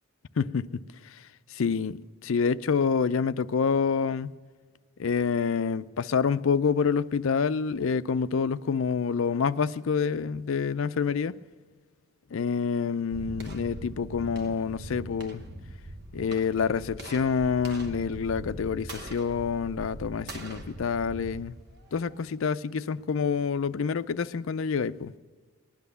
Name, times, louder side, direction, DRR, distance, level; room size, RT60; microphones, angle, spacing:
voice 1, 0.4-2.0 2.2-4.3 5.0-11.4 12.3-15.4 16.1-21.5 21.9-25.1, left 5 dB, 70° left, 0.4 m, -27 dB
sound 1, 13.1-22.3, right 1 dB, 50° right, 1.0 m, -42 dB
19.5 x 10.5 x 6.8 m
head